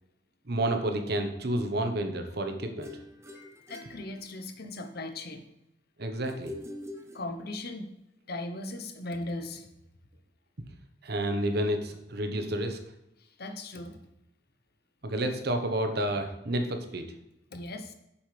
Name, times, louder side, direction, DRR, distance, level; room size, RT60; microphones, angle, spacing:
voice 1, 0.5-2.9 6.0-6.5 11.0-12.8 15.0-17.1, right 1 dB, 60° right, 6 dB, 1.1 m, -30 dB
sound 1, 2.8-4.8 6.2-7.8, left 1 dB, 15° right, 0.8 m, -45 dB
voice 2, 3.3-5.5 7.1-7.9 8.3-9.7 13.2-14.0 17.5-17.9, left 2 dB, 55° left, 7 dB, 1.0 m, -38 dB
9.5 x 7.3 x 3.3 m, 0.87 s
head